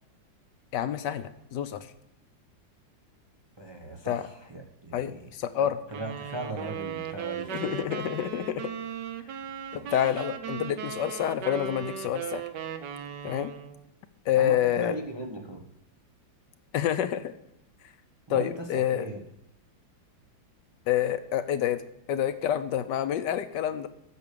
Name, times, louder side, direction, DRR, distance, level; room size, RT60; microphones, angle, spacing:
voice 1, 0.7-1.9 4.0-4.2 4.9-5.8 7.5-8.7 9.7-12.4 13.2-13.5 14.3-15.0 16.7-17.3 18.3-19.1 20.9-21.8 22.1-23.9, left 10 dB, 70° left, 11 dB, 1.2 m, -28 dB
voice 2, 3.6-7.6 9.7-10.2 14.4-15.6 18.3-19.2, right 1 dB, 30° right, 2 dB, 0.5 m, -39 dB
sound 1, 5.9-13.8, right 8 dB, 65° right, 1.3 m, -37 dB
8.4 x 6.7 x 6.7 m, 0.86 s
omnidirectional pair, 2.1 m